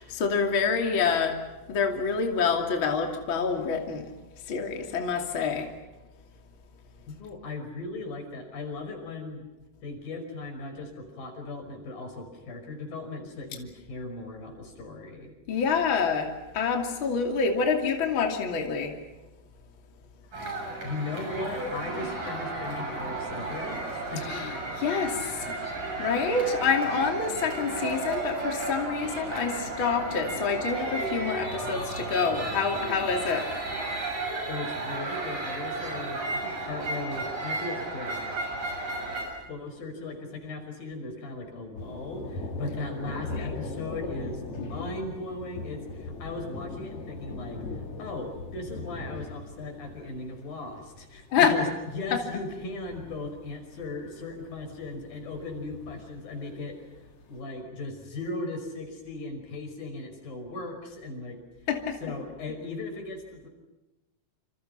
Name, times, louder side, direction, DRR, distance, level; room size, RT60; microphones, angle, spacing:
voice 1, 0.0-1.4 1.7-4.1 4.5-5.7 15.5-18.9 24.2-25.6 26.0-33.5 43.3-43.5 51.3-51.5 52.1-52.4 61.7-62.1, left 5 dB, 40° left, 3 dB, 3.2 m, -27 dB
voice 2, 7.2-9.4 9.8-15.3 20.8-23.8 24.1-24.3 34.5-38.3 39.5-47.6 48.0-51.7 51.9-56.8 57.3-61.4 62.0-63.5, left 2 dB, 85° left, 4 dB, 7.3 m, -37 dB
sound 1, 20.3-39.2, right 2 dB, 60° right, 8.2 m, -33 dB
Thunder, 41.8-57.3, left 3 dB, 55° left, 4.1 m, -40 dB
28.5 x 27.0 x 5.8 m, 1.1 s
omnidirectional pair, 4.0 m